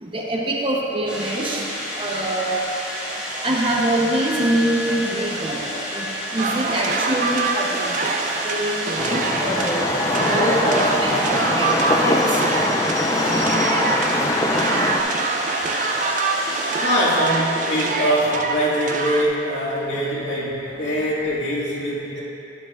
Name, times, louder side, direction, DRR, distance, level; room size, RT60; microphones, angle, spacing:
voice 1, 0.0-1.6 2.0-2.6 3.4-5.6 5.9-8.0 8.4-11.2 11.5-12.2, right 1 dB, 30° right, -3 dB, 0.9 m, -24 dB
sound 1, 1.1-18.6, equal, 5° right, 1.9 m, -30 dB
sound 2, 6.4-19.2, right 4 dB, 45° right, 0.4 m, -26 dB
sound 3, 9.0-15.0, left 1 dB, 20° left, 0.4 m, -22 dB
voice 2, 16.7-22.2, equal, 80° left, -7 dB, 2.2 m, -23 dB
11.5 x 9.4 x 2.5 m, 2.8 s
head